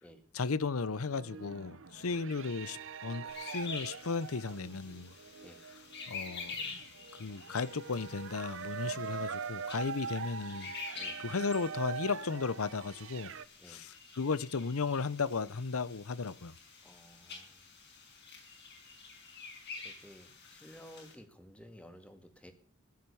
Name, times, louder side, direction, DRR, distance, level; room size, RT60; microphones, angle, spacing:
voice 1, 0.3-5.1 6.1-6.6 7.2-10.7 11.2-13.3 13.7-16.5, left 4 dB, 75° left, 0.7 m, -35 dB
sound 1, 0.9-13.4, right 6 dB, 60° right, 0.8 m, -43 dB
sound 2, 3.3-21.1, left 4 dB, 50° left, 5.1 m, -48 dB
voice 2, 16.8-17.6 19.8-22.5, equal, 5° left, 2.1 m, -54 dB
15.5 x 11.0 x 7.0 m
head